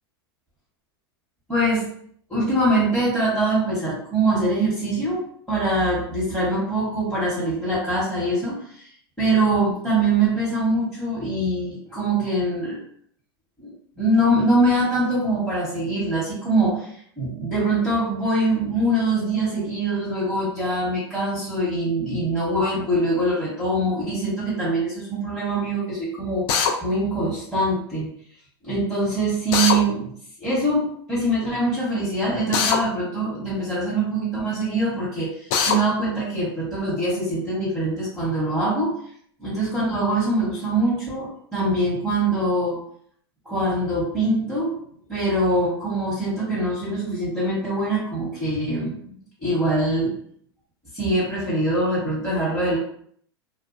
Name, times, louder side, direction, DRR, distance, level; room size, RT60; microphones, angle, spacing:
voice 1, 1.5-1.9 2.3-8.9 9.2-12.8 13.6-26.5 26.8-28.1 28.6-30.1 30.4-39.0 39.4-42.8 43.4-50.2 50.9-52.8, right 1 dB, ahead, -10 dB, 0.9 m, -23 dB
Drill, 26.5-26.7 29.5-29.8 32.5-32.8 35.5-35.8, left 6 dB, 50° left, 0.4 m, -20 dB
2.3 x 2.2 x 2.5 m, 0.63 s
hypercardioid pair, 110°, 13 cm